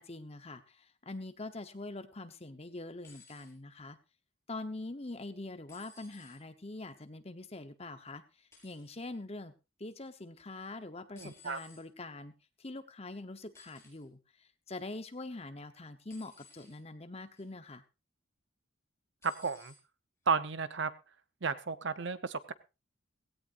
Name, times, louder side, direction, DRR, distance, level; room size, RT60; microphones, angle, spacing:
voice 1, 0.0-4.0 4.5-9.5 9.8-12.3 12.6-17.8, left 2 dB, 30° left, 9 dB, 1.0 m, -44 dB
sound 1, 3.0-3.5 5.7-6.4 8.5-8.9 11.2-11.9 13.5-14.0 16.1-16.8 17.4-17.7 19.2-19.8 20.8-20.9, left 4 dB, 15° left, 5.5 m, -58 dB
voice 2, 11.1-11.6 19.2-19.7 20.3-20.9 21.4-22.5, right 5 dB, 55° right, 13 dB, 0.8 m, -33 dB
17.0 x 16.5 x 2.6 m, 0.28 s
head